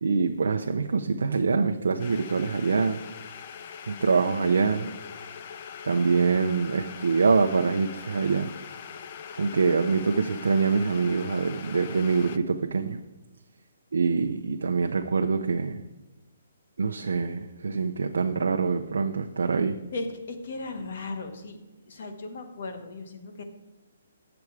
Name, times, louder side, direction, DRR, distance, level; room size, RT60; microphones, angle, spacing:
voice 1, 0.0-3.0 3.9-4.9 5.8-8.5 9.4-13.0 13.9-15.8 16.8-19.8, right 4 dB, 85° right, 4 dB, 0.5 m, -25 dB
sound 1, 2.0-12.4, left 7 dB, 35° left, 0.5 m, -42 dB
voice 2, 19.9-21.6 21.8-23.4, left 3 dB, 50° left, 6 dB, 1.3 m, -36 dB
8.6 x 7.0 x 4.7 m, 1.1 s
hypercardioid pair, 170°, 0 cm